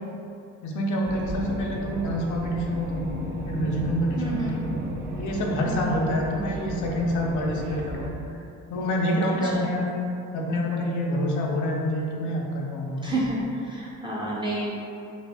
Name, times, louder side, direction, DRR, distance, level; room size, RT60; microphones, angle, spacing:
voice 1, 0.6-3.1 3.5-4.6 5.2-8.4 8.7-9.9 10.3-13.1, left 1 dB, 80° left, -1 dB, 0.6 m, -27 dB
sound 1, 1.0-8.1, right 1 dB, 90° right, 0.6 m, -33 dB
voice 2, 4.2-4.7 5.6-6.1 9.3-9.7 13.0-14.8, right 1 dB, 15° right, -6 dB, 0.5 m, -30 dB
2.7 x 2.5 x 3.4 m, 2.6 s
cardioid pair, 90°, 30 cm